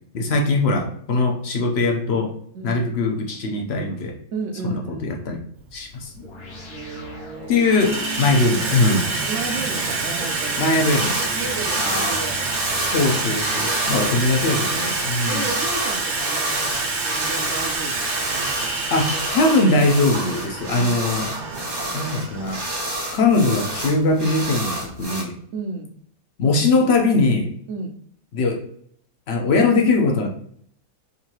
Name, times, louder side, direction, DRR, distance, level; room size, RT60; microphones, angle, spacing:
voice 1, 0.1-2.3 2.6-4.1 4.6-5.4 5.7-6.1 7.5-9.1 10.6-11.3 11.8-12.2 12.8-15.4 18.9-21.3 21.9-22.6 23.1-25.3 26.4-27.5 28.3-28.6 29.3-30.3, left 3 dB, 55° left, 1 dB, 0.8 m, -21 dB
voice 2, 4.3-5.2 6.5-7.7 9.3-10.7 11.3-12.9 15.3-16.7 17.0-18.9 20.7-20.9 21.5-21.7 25.5-25.9 27.7-27.9, right 3 dB, 60° right, 4 dB, 0.9 m, -33 dB
Water tap faucet / Sink (filling or washing), 5.7-5.8 6.7-7.1 7.4-25.0, right 3 dB, 80° right, 1.4 m, -27 dB
sound 1, 6.2-15.0, right 2 dB, 70° left, 1.4 m, -40 dB
sound 2, 10.7-11.3 11.6-25.2, right 1 dB, 30° right, 0.4 m, -29 dB
3.9 x 2.7 x 2.9 m, 0.63 s
omnidirectional pair, 1.6 m